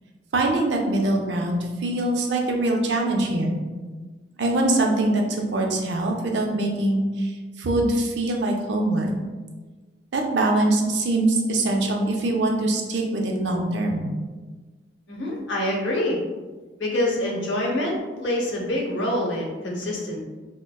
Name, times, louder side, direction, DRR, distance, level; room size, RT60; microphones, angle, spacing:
voice 1, 0.3-3.6 4.4-7.3 7.6-9.1 10.1-14.1, right 2 dB, 70° right, 1 dB, 0.5 m, -23 dB
voice 2, 15.1-16.2 16.8-20.2, left 1 dB, 85° left, -2 dB, 0.8 m, -26 dB
4.7 x 2.1 x 2.2 m, 1.3 s
head